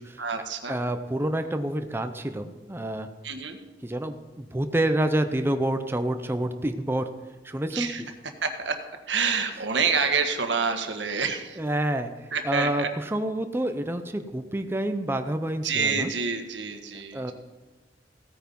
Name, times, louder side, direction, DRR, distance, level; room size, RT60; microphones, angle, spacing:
voice 1, 0.2-0.8 3.2-3.6 7.7-8.0 8.4-8.7 9.1-11.6 12.3-12.9 15.6-17.3, right 5 dB, 90° right, 6 dB, 1.5 m, -27 dB
voice 2, 0.7-3.1 3.8-7.0 7.4-8.1 11.6-16.1 17.1-17.3, right 1 dB, 15° right, 7 dB, 0.7 m, -28 dB
16.0 x 9.1 x 5.4 m, 1.2 s
head